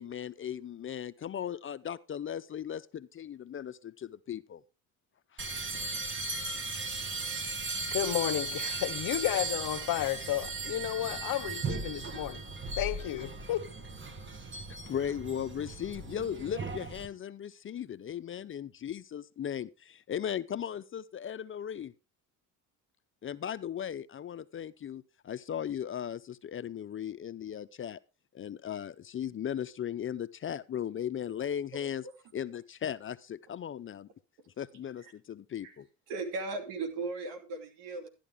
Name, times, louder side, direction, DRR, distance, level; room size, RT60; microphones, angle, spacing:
voice 1, 0.0-4.6 5.3-5.4 5.7-5.9 14.9-21.9 23.2-28.0 28.3-32.0 32.3-34.1 34.6-35.9, left 9 dB, 30° left, 0.5 m, -37 dB
sound 1, 5.4-17.1, right 3 dB, 30° right, 1.5 m, -37 dB
voice 2, 7.9-12.4 12.8-13.7, left 13 dB, 60° left, 0.9 m, -32 dB
voice 3, 31.7-32.1 35.0-35.1 35.6-35.7 36.1-38.1, right 3 dB, 80° right, 2.7 m, -37 dB
12.0 x 10.0 x 3.5 m
supercardioid pair, 90°, 40 cm